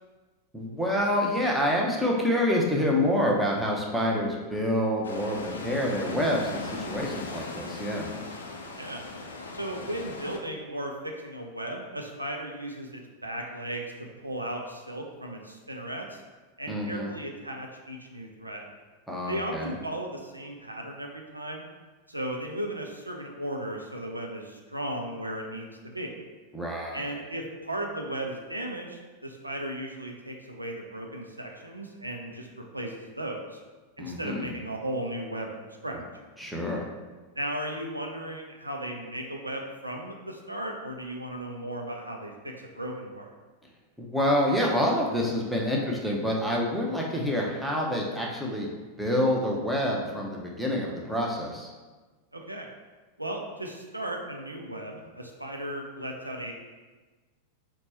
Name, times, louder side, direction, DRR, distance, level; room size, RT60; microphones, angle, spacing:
voice 1, 0.5-8.1 16.7-17.1 19.1-19.7 26.5-27.0 34.0-34.5 36.4-36.8 44.0-48.7 49.0-51.7, left 1 dB, ahead, -3 dB, 0.7 m, -27 dB
sound 1, 5.0-10.4, left 3 dB, 70° left, 0.4 m, -39 dB
voice 2, 9.5-13.9 14.2-16.2 16.6-18.7 19.3-21.7 22.1-26.1 26.9-33.6 34.0-36.0 37.4-43.3 52.3-52.7 53.2-56.5, right 1 dB, 85° right, 1 dB, 0.4 m, -36 dB
4.2 x 2.2 x 4.2 m, 1.3 s
figure-of-eight pair, 90°, 0 cm